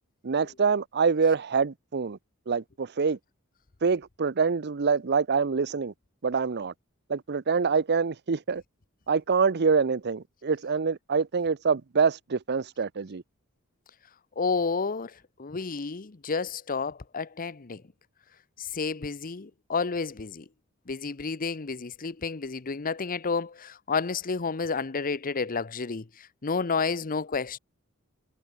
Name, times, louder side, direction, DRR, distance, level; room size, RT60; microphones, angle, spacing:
voice 1, 0.2-2.2 2.5-3.2 3.8-5.9 6.2-6.7 7.1-8.6 9.1-13.2, right 5 dB, 50° right, 0.7 m, -25 dB
voice 2, 14.4-15.1 15.4-17.8 18.6-20.4 20.9-27.6, left 4 dB, 40° left, 0.8 m, -30 dB
head